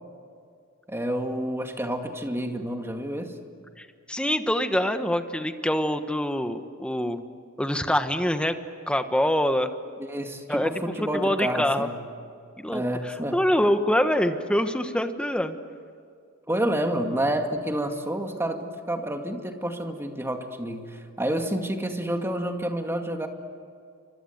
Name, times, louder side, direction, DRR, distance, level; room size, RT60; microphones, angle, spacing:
voice 1, 0.9-3.4 10.0-11.9 12.7-13.4 16.5-23.3, right 1 dB, 10° right, 4 dB, 2.2 m, -29 dB
voice 2, 3.8-7.2 7.6-8.6 8.9-9.7 10.5-11.9 12.6-15.6, equal, 5° left, 8 dB, 1.3 m, -25 dB
29.5 x 25.0 x 8.1 m, 2.3 s
head